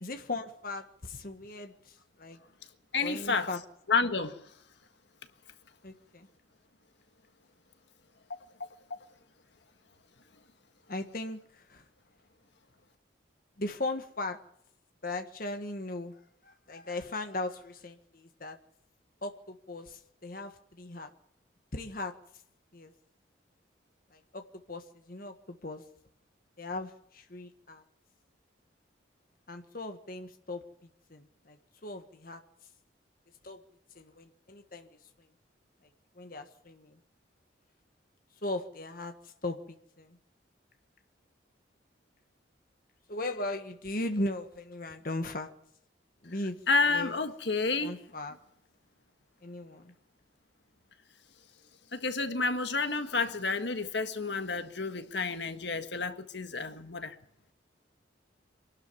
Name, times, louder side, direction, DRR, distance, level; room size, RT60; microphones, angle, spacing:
voice 1, 0.0-2.4 3.0-3.6 5.8-6.3 10.9-11.9 13.6-14.4 15.0-16.2 16.4-18.6 19.2-21.1 21.7-22.1 22.7-22.9 24.1-25.8 26.6-27.8 29.5-30.6 31.1-32.4 33.4-33.6 33.9-34.9 36.1-37.0 38.4-40.2 43.1-45.5 46.2-46.6 46.9-47.1 47.8-48.4 49.4-49.9, left 2 dB, 50° left, 1.5 m, -38 dB
voice 2, 2.9-3.5 3.9-4.4 8.3-8.4 8.9-9.0 46.7-48.0 51.9-57.2, left 4 dB, 70° left, 1.6 m, -30 dB
24.0 x 12.5 x 9.7 m
head